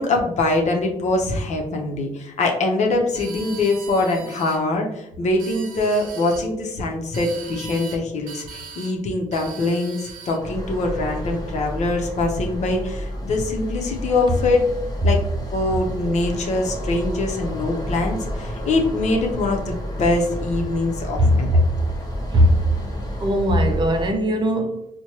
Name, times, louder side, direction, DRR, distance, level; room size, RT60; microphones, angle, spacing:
voice 1, 0.0-14.6 15.0-15.2 15.5-21.6, left 2 dB, 55° left, 0.8 m, -23 dB
sound 1, 3.1-4.6 5.2-6.5 7.1-8.0 8.3-9.0 9.3-10.4, right 5 dB, 80° right, 0.6 m, -40 dB
sound 2, 10.4-24.1, equal, 30° left, 0.9 m, -31 dB
voice 2, 21.2-21.7 22.3-22.7 23.2-24.9, equal, 35° right, 0.5 m, -19 dB
4.3 x 2.2 x 3.0 m
cardioid pair, 110°, 14 cm